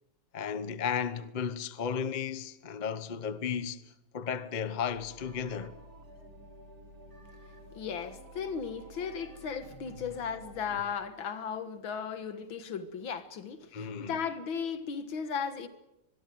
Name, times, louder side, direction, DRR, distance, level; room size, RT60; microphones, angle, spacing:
voice 1, 0.3-3.8 4.1-5.7 13.7-14.2, left 7 dB, 40° left, 0.6 m, -34 dB
sound 1, 4.9-10.8, right 1 dB, 45° right, 3.7 m, -51 dB
voice 2, 7.7-15.7, left 6 dB, 65° left, 2.3 m, -36 dB
24.5 x 22.5 x 7.8 m
omnidirectional pair, 2.4 m